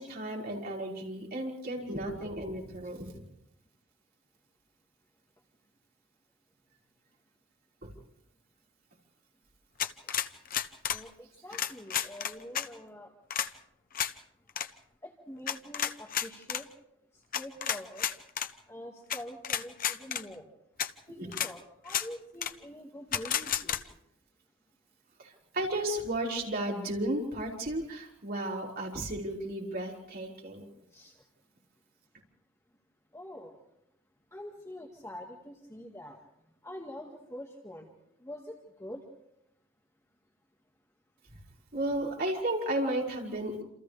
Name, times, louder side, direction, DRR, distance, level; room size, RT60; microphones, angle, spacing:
voice 1, 0.0-3.2 7.8-7.9 21.2-21.3 25.2-30.7 41.7-43.6, right 1 dB, 50° right, -3 dB, 5.5 m, -34 dB
sound 1, 9.8-11.0 11.5-12.7 13.3-13.5 13.9-14.1 14.5-14.7 15.5-16.6 17.3-18.5 19.1-19.2 19.4-20.2 20.8-20.9 21.3-21.5 21.9-22.1 22.4-22.5 23.1-23.8, left 9 dB, 45° left, 0.9 m, -31 dB
voice 2, 10.9-13.1 15.0-16.7 17.4-18.1 18.7-20.4 21.1-23.8 30.9-31.1 33.1-33.5 34.3-36.2 36.6-37.9 38.2-39.0, left 1 dB, 15° left, 0 dB, 2.0 m, -45 dB
28.5 x 28.0 x 3.5 m, 0.80 s
head